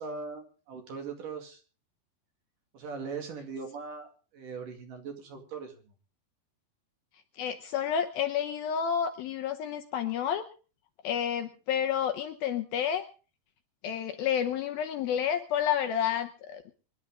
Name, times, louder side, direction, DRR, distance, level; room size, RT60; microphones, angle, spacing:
voice 1, 0.0-1.6 2.7-4.1 4.3-5.7, right 5 dB, 55° right, 4 dB, 3.6 m, -40 dB
voice 2, 7.4-10.5 11.0-13.1 13.8-16.7, left 8 dB, 75° left, 7 dB, 2.4 m, -30 dB
25.0 x 11.0 x 3.7 m, 0.36 s
omnidirectional pair, 5.0 m